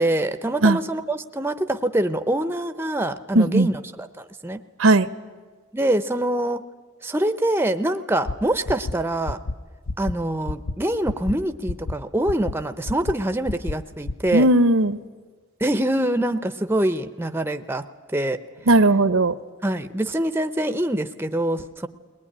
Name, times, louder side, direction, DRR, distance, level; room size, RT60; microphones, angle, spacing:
voice 1, 0.0-4.6 5.7-6.6 7.0-9.4 10.0-14.5 15.6-17.8 18.1-18.4 19.6-21.9, right 1 dB, 10° right, 10 dB, 0.6 m, -24 dB
voice 2, 3.3-3.7 4.8-5.1 14.3-15.0 18.7-19.3, right 2 dB, 70° right, 14 dB, 0.8 m, -17 dB
sound 1, 8.3-8.4 8.7-8.9 9.3-9.5 9.9-10.1 10.5-10.7 11.1-11.3 11.7-11.9 12.3-12.5 12.9-13.1 13.5-13.7 14.1-14.3, left 2 dB, 85° left, 0.6 m, -28 dB
21.0 x 20.0 x 10.0 m, 1.5 s
head